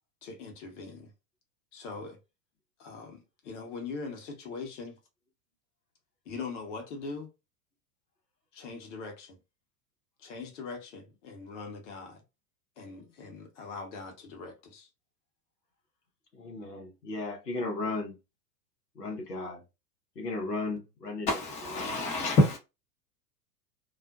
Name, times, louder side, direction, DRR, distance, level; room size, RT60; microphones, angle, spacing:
voice 1, 0.2-1.1 1.7-2.2 2.8-5.0 6.2-7.3 8.5-9.4 10.2-12.2 12.8-14.9, left 4 dB, 50° left, 1.0 m, -41 dB
voice 2, 16.3-18.2 18.9-19.6 20.1-21.3 21.7-21.9, left 2 dB, 85° left, 0.9 m, -35 dB
voice 3, 21.3-22.6, left 1 dB, 15° left, 0.6 m, -26 dB
2.5 x 2.1 x 2.3 m
figure-of-eight pair, 90°, 47 cm